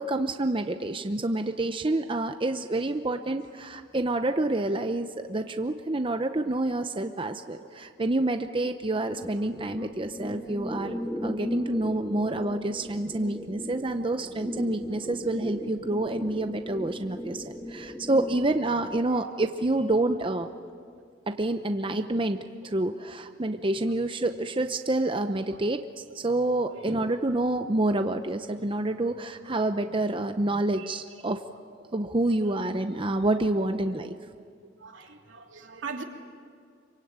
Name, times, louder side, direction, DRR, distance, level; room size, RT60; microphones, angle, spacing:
voice 1, 0.0-20.5 21.3-31.4 31.9-34.1, right 2 dB, 25° right, 0.7 m, -28 dB
voice 2, 7.5-7.9 8.4-8.7 9.8-9.9 11.6-11.7 13.2-13.3 13.6-14.3 14.8-14.9 17.5-17.9 18.3-18.9 22.6-22.8 23.2-23.4 23.8-23.9 26.6-27.0 27.3-27.4 28.4-28.5 29.4-29.6 31.8-31.9 33.5-33.9 34.6-36.0, right 4 dB, 80° right, 2.8 m, -45 dB
sound 1, 9.2-19.0, equal, 5° left, 1.7 m, -37 dB
27.0 x 24.0 x 8.9 m
head